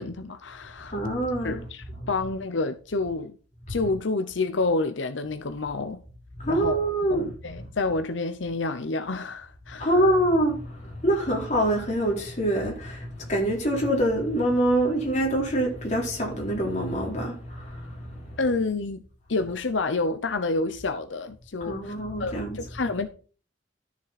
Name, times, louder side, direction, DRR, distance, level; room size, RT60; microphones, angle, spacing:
voice 1, 0.0-1.0 1.4-3.4 3.7-6.0 6.5-6.8 7.1-9.9 18.4-19.0 19.3-21.9 22.2-23.1, left 3 dB, 90° left, 0.8 m, -28 dB
voice 2, 0.9-1.7 2.0-2.3 3.8-3.9 6.4-7.4 9.8-18.5 21.6-22.7, right 1 dB, 40° left, 4.1 m, -25 dB
12.5 x 7.2 x 4.3 m
head